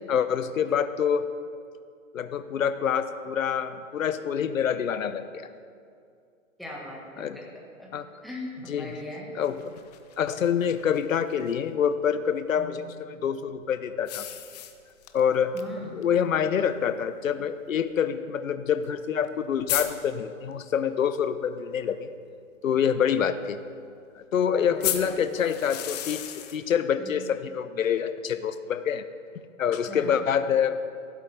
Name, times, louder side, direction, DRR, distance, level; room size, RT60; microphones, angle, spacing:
voice 1, 0.1-1.3 2.1-5.5 7.2-7.4 7.9-8.0 8.7-8.9 9.3-9.6 10.2-14.3 15.1-15.6 15.9-22.1 22.6-23.6 24.2-29.1 29.6-30.8, left 8 dB, 75° left, 12 dB, 0.7 m, -26 dB
voice 2, 6.6-7.5 7.8-7.9 8.2-9.3 12.5-12.7 15.5-16.0 24.4-25.2 27.0-27.1 29.9-30.2, left 1 dB, ahead, -4 dB, 1.4 m, -39 dB
sound 1, 9.4-11.5 14.0-15.2 15.6-15.7 16.0-16.1 17.0-17.1 18.9-19.0 19.2-19.3 19.7-19.9 24.8-26.6, left 12 dB, 30° left, 0.6 m, -33 dB
15.0 x 8.1 x 3.4 m, 2.3 s
hypercardioid pair, 125°, 40 cm